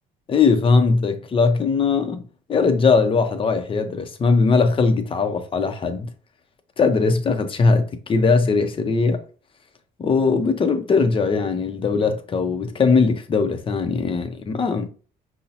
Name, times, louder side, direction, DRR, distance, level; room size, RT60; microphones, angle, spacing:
voice 1, 0.3-6.1 6.8-9.2 10.0-14.9, left 4 dB, 30° left, 0.6 m, -20 dB
5.2 x 2.1 x 2.8 m
cardioid pair, 110°, 17 cm